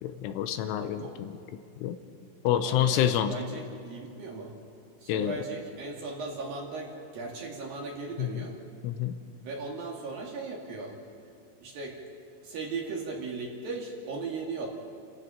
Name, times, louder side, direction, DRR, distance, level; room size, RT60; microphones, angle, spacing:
voice 1, 0.0-1.3 1.8-2.0 2.4-3.3 5.1-5.4 8.2-8.4 8.8-9.2, left 10 dB, 80° left, 9 dB, 3.2 m, -28 dB
voice 2, 2.6-4.5 5.0-8.6 9.4-10.9 11.6-12.0 12.4-14.7, right 3 dB, 50° right, -1 dB, 3.6 m, -37 dB
29.5 x 15.5 x 5.8 m, 2.5 s
omnidirectional pair, 5.8 m